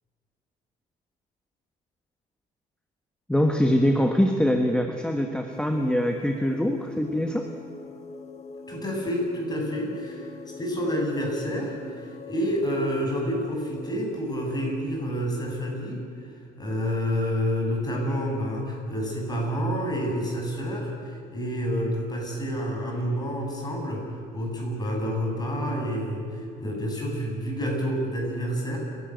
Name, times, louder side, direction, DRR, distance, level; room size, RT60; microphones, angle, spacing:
voice 1, 3.3-7.5, equal, 5° left, 4 dB, 1.4 m, -23 dB
sound 1, 5.5-14.7, left 5 dB, 40° left, 1.8 m, -43 dB
voice 2, 8.7-10.3 10.6-28.8, equal, 25° left, -1 dB, 7.5 m, -29 dB
29.0 x 12.5 x 9.3 m, 2.3 s
cardioid pair, 110°, 17 cm